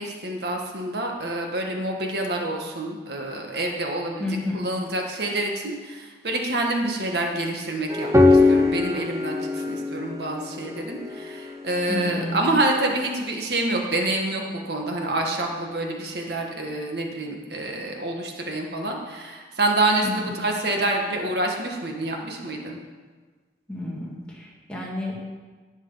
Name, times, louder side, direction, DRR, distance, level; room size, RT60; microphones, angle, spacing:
voice 1, 0.0-4.2 4.5-22.8, right 2 dB, 65° right, 1 dB, 1.7 m, -27 dB
voice 2, 4.2-4.7 11.9-12.4 20.0-20.3 23.7-25.2, left 2 dB, 5° left, -4 dB, 2.1 m, -31 dB
sound 1, 7.9-12.9, left 3 dB, 15° right, 0.7 m, -22 dB
11.0 x 9.6 x 5.7 m, 1.4 s
head